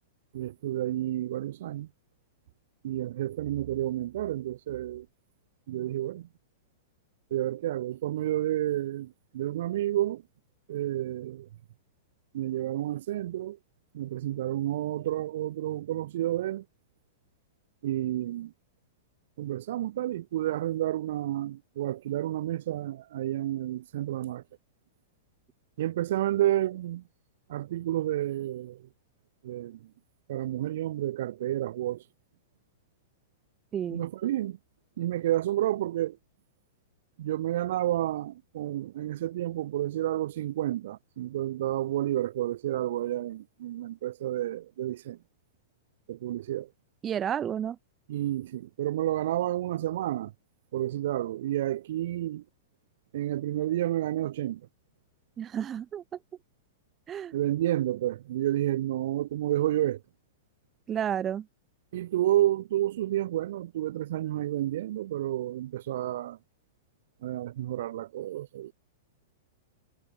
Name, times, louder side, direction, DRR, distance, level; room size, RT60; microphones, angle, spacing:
voice 1, 0.3-1.9 2.8-5.1 5.7-6.3 7.3-10.2 10.7-11.5 12.3-13.6 13.9-16.6 17.8-18.5 19.4-24.4 25.8-27.0 27.5-28.9 29.4-29.9 30.3-32.0 33.9-34.6 35.0-36.2 37.2-45.2 46.1-46.7 48.1-50.3 50.7-52.4 53.1-54.6 57.3-60.0 61.9-66.4 67.2-68.7, right 13 dB, 65° right, 4.6 m, -30 dB
voice 2, 33.7-34.0 47.0-47.8 55.4-56.0 57.1-57.3 60.9-61.5, right 9 dB, 20° right, 2.2 m, -31 dB
hypercardioid pair, 140°, 0 cm